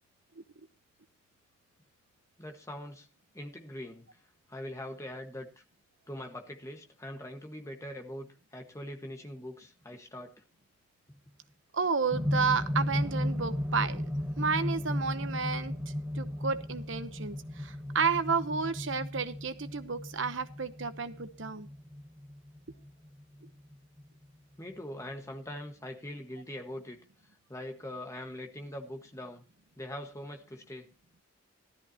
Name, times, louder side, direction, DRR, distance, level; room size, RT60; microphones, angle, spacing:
voice 1, 2.4-3.1 3.3-4.0 4.5-5.6 6.1-10.4 11.1-11.2 24.6-27.0 27.5-29.4 29.8-30.9, left 1 dB, 15° left, 3 dB, 1.5 m, -42 dB
voice 2, 11.7-14.0 14.4-15.7 16.2-17.4 17.6-21.7, right 5 dB, 65° right, 11 dB, 0.9 m, -31 dB
sound 1, 12.1-24.2 25.2-25.3, left 1 dB, 5° right, 1.4 m, -35 dB
15.5 x 13.0 x 2.9 m, 0.33 s
head